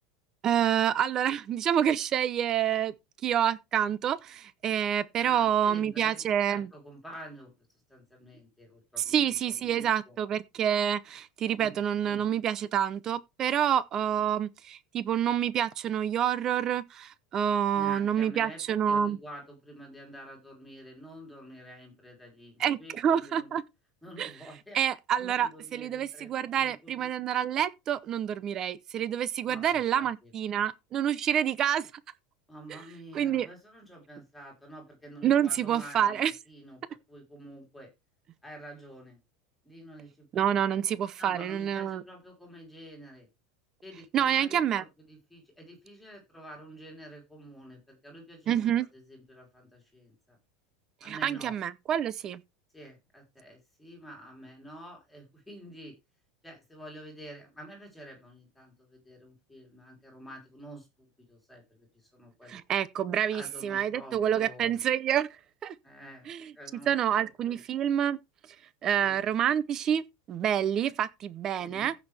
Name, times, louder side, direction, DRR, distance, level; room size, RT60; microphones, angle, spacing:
voice 1, 0.4-2.9 3.2-6.7 9.1-19.2 22.6-23.6 24.2-24.3 24.7-31.9 33.1-33.5 35.2-36.3 40.3-42.0 44.1-44.8 48.5-48.9 51.1-52.4 62.5-65.3 65.6-65.7 66.3-66.5 66.9-68.2 68.8-71.9, right 9 dB, 20° right, 0.6 m, -28 dB
voice 2, 5.2-7.5 7.9-10.2 11.6-11.8 12.1-12.2 17.7-23.6 24.0-24.8 25.2-27.1 29.4-30.3 32.5-36.8 37.1-37.9 38.4-39.2 39.6-40.8 41.2-43.3 43.8-50.4 51.0-51.5 52.7-55.9 56.4-60.9 61.3-62.6 63.3-64.8 65.8-67.6 69.0-69.3 71.6-71.9, equal, ahead, 3.7 m, -48 dB
15.0 x 6.1 x 3.4 m
supercardioid pair, 180°, 2 cm